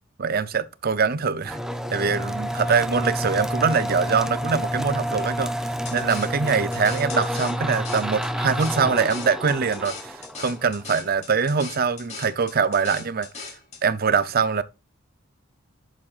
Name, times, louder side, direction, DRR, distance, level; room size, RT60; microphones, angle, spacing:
voice 1, 0.2-1.6 1.9-5.5 5.9-13.5 13.8-14.6, right 5 dB, 45° right, 0.6 m, -23 dB
sound 1, 1.4-11.0, equal, ahead, 0.6 m, -29 dB
sound 2, 5.9-13.8, left 5 dB, 30° left, 3.0 m, -39 dB
11.0 x 7.3 x 2.5 m
head